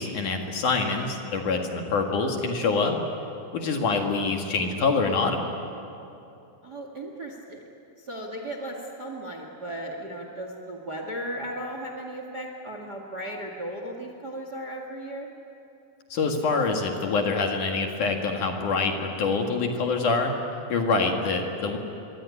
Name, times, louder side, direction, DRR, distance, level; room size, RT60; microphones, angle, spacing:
voice 1, 0.0-3.0 3.5-5.4 16.1-20.3 20.7-21.8, left 4 dB, 55° left, 3 dB, 3.0 m, -25 dB
voice 2, 6.6-7.6 8.0-15.3, right 1 dB, 35° right, 3 dB, 1.7 m, -36 dB
25.5 x 24.0 x 9.8 m, 2.8 s
omnidirectional pair, 4.8 m